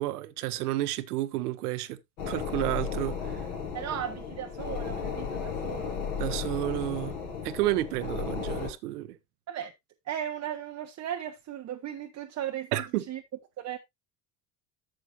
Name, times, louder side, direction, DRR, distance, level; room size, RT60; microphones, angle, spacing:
voice 1, 0.0-2.0 2.3-3.4 6.2-7.1 7.4-9.2 12.7-13.0, right 15 dB, 65° right, 1.0 m, -31 dB
sound 1, 2.2-8.7, left 6 dB, 60° left, 3.3 m, -34 dB
voice 2, 3.7-6.0 9.5-9.7 10.0-12.7 13.1-13.2 13.6-13.8, right 10 dB, 30° right, 0.9 m, -36 dB
11.0 x 7.5 x 2.6 m
figure-of-eight pair, 70°, 49 cm